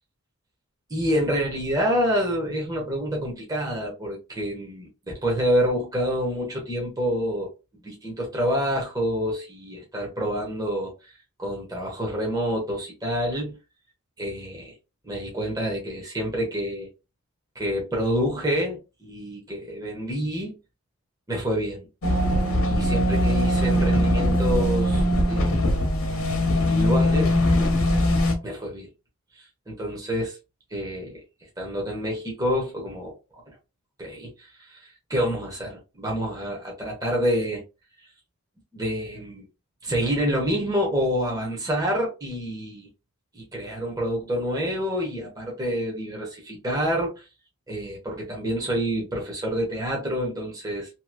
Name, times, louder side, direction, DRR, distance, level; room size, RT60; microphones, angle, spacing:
voice 1, 0.9-7.5 7.8-11.1 11.4-13.6 14.2-14.7 15.0-16.9 17.5-20.6 21.3-21.9 22.6-25.7 26.5-27.3 28.4-28.9 29.3-30.4 30.7-31.2 31.6-33.4 34.0-37.6 38.7-39.4 39.8-42.9 43.3-47.2 47.7-50.9, equal, 15° right, 1.0 m, -27 dB
sound 1, 22.0-28.3, equal, 75° left, 0.9 m, -21 dB
2.9 x 2.6 x 2.5 m
head